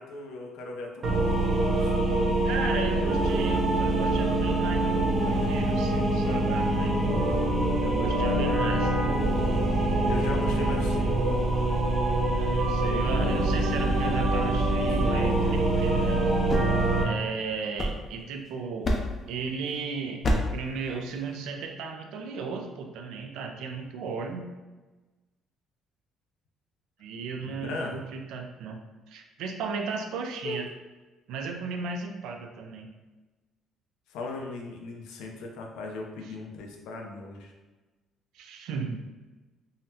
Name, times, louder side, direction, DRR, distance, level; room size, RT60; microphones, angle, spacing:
voice 1, 0.0-1.5 1.8-2.0 8.1-8.6 10.1-11.4 14.9-15.0 27.4-28.0 30.4-30.6 34.1-37.5, left 2 dB, 90° left, 1 dB, 0.5 m, -38 dB
sound 1, 1.0-17.0, right 1 dB, 40° right, 0.6 m, -25 dB
voice 2, 2.4-7.0 7.8-8.9 12.3-16.3 17.0-18.9 19.3-24.5 27.0-28.8 29.1-30.7 31.3-32.9 38.3-39.1, right 5 dB, 80° right, 3 dB, 0.4 m, -35 dB
sound 2, 16.5-18.4 18.8-19.3 20.2-20.7, left 1 dB, 35° left, 0.5 m, -29 dB
3.8 x 2.0 x 2.7 m, 1.2 s
cardioid pair, 125°, 0 cm